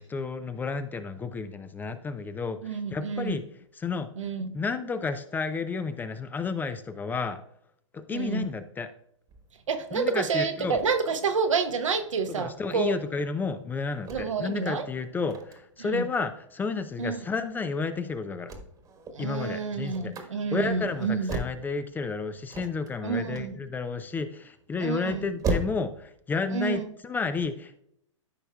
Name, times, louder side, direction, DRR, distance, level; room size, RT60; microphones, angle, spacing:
voice 1, 0.0-3.4 3.7-4.1 4.5-7.4 7.9-8.9 9.9-10.8 12.3-18.5 19.2-20.1 20.5-27.8, left 4 dB, 10° left, 0.4 m, -31 dB
voice 2, 2.6-3.4 4.2-4.5 8.1-8.5 9.7-12.9 14.1-14.9 15.8-16.0 17.0-17.2 19.1-21.3 23.0-23.6 24.8-25.3 26.5-26.9, right 5 dB, 75° right, 1.1 m, -29 dB
sound 1, 9.3-26.1, right 2 dB, 20° right, 1.3 m, -38 dB
13.5 x 5.5 x 2.3 m
figure-of-eight pair, 115°, 17 cm